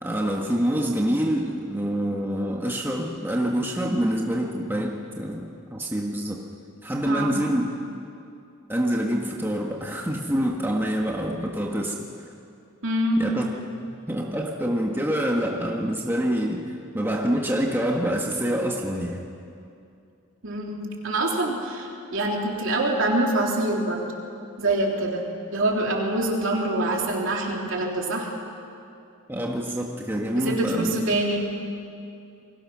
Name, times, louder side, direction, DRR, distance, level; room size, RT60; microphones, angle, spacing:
voice 1, 0.0-6.4 6.8-7.7 8.7-12.0 13.2-13.4 13.9-19.3 29.3-31.0, equal, 10° right, -1 dB, 1.6 m, -26 dB
voice 2, 7.1-7.4 12.8-13.4 20.4-24.0 24.6-28.3 30.3-31.5, right 1 dB, 60° right, -1 dB, 3.6 m, -25 dB
29.0 x 22.0 x 6.3 m, 2.6 s
head